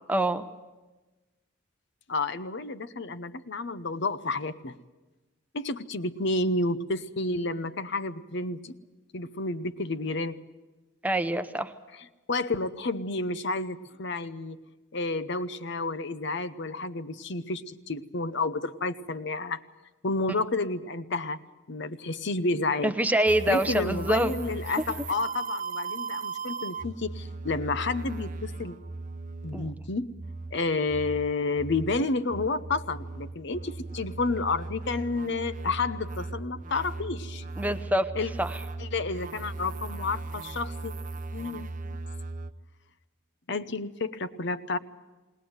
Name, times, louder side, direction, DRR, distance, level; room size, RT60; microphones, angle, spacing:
voice 1, 0.1-0.4 11.0-11.7 22.8-24.3 29.5-29.7 37.6-38.1 38.4-38.6, right 1 dB, 10° right, 10 dB, 0.8 m, -25 dB
voice 2, 2.1-4.7 5.5-8.7 9.1-10.4 12.3-14.6 14.9-19.6 20.0-21.4 21.7-22.9 23.5-28.8 29.4-30.1 30.5-37.4 38.1-38.3 38.8-40.9 41.3-41.7 43.5-44.8, left 3 dB, 60° left, 13 dB, 0.9 m, -30 dB
sound 1, 23.3-42.5, right 3 dB, 40° right, 0.6 m, -38 dB
20.0 x 20.0 x 8.0 m, 1.2 s
head